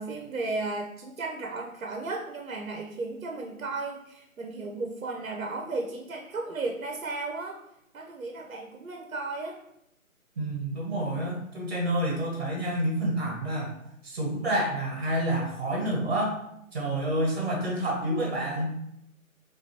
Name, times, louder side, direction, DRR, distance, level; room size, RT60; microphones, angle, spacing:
voice 1, 0.0-7.6 7.9-9.6, right 3 dB, 70° right, 1 dB, 0.8 m, -34 dB
voice 2, 10.4-13.7 14.0-16.4 16.7-18.7, right 1 dB, 30° right, -2 dB, 0.9 m, -28 dB
6.2 x 2.6 x 2.9 m, 0.80 s
figure-of-eight pair, 160°, 43 cm